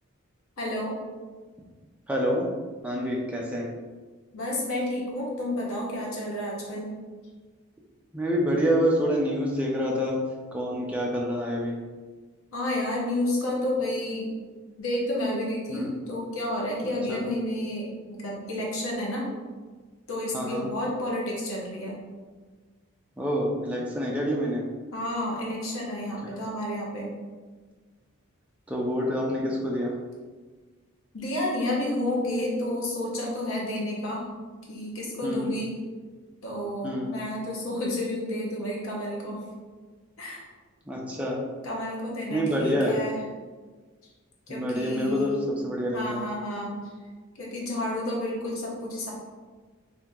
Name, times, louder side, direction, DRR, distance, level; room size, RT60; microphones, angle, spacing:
voice 1, 0.6-1.0 4.3-6.9 12.5-14.3 14.8-19.3 20.1-22.0 24.9-27.1 31.1-34.3 34.7-35.7 36.4-39.5 40.2-40.4 41.6-43.2 44.5-45.3 45.9-46.7 47.4-49.1, left 1 dB, 70° left, -3 dB, 0.9 m, -30 dB
voice 2, 2.1-2.5 2.8-3.7 8.1-10.2 10.5-11.8 15.7-15.9 16.8-17.2 20.3-20.7 23.2-24.6 28.7-30.0 35.2-35.5 36.8-37.2 40.9-41.4 42.3-42.9 44.5-46.3, equal, 5° right, -2 dB, 0.4 m, -27 dB
2.8 x 2.8 x 3.6 m, 1.4 s
head